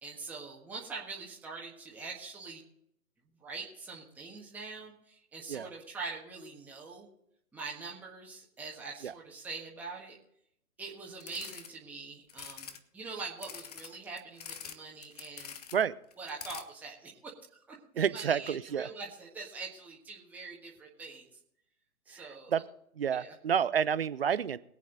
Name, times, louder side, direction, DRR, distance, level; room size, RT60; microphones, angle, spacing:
voice 1, 0.0-2.6 3.4-7.1 7.5-10.2 10.8-15.5 16.2-21.3 22.1-22.6 23.1-23.3, right 4 dB, 5° right, -3 dB, 1.5 m, -44 dB
sound 1, 11.2-11.7 12.3-12.8 13.4-14.8 15.0-15.8 16.1-16.6, left 7 dB, 25° left, 0.7 m, -45 dB
voice 2, 18.0-18.9 22.5-22.6 23.0-24.6, right 8 dB, 40° right, 17 dB, 0.6 m, -29 dB
21.5 x 8.3 x 3.9 m, 0.71 s
figure-of-eight pair, 135°, 46 cm